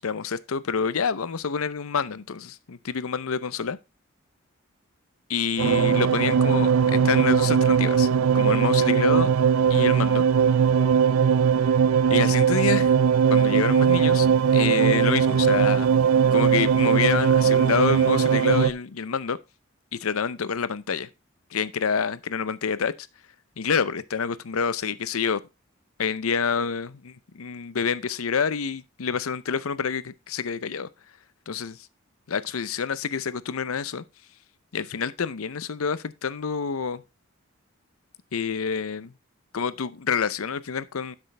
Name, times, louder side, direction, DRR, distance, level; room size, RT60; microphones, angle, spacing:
voice 1, 0.0-3.8 5.3-8.1 8.3-9.3 9.7-10.2 12.1-12.9 13.3-14.3 14.5-15.9 16.3-19.4 19.9-21.1 21.5-22.9 23.6-25.4 26.0-30.9 31.5-31.8 32.3-34.0 34.7-37.0 38.3-39.1 39.5-41.2, left 6 dB, 85° left, 0.6 m, -27 dB
sound 1, 5.6-18.7, right 7 dB, 85° right, 0.5 m, -20 dB
12.0 x 6.2 x 3.3 m
head